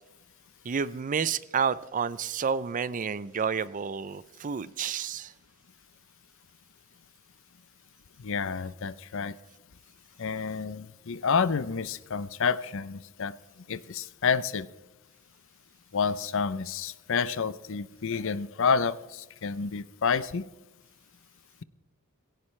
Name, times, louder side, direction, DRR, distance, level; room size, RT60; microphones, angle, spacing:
voice 1, 0.6-5.3, right 6 dB, 40° right, 0.5 m, -30 dB
voice 2, 8.2-9.3 10.2-13.3 13.7-14.7 15.9-20.5, left 5 dB, 65° left, 0.6 m, -29 dB
20.0 x 17.0 x 3.2 m
head